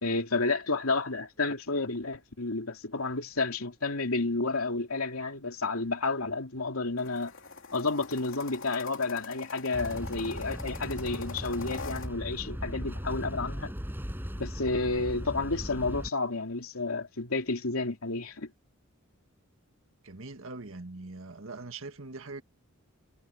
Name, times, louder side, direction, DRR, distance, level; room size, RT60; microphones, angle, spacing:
voice 1, 0.0-7.3 7.7-13.7 14.4-18.5, left 3 dB, 80° left, 2.8 m, -31 dB
sound 1, 7.0-12.1, left 4 dB, 65° left, 3.1 m, -44 dB
sound 2, 9.7-16.1, equal, 10° right, 6.5 m, -38 dB
voice 2, 20.0-22.4, right 3 dB, 65° right, 1.8 m, -42 dB
head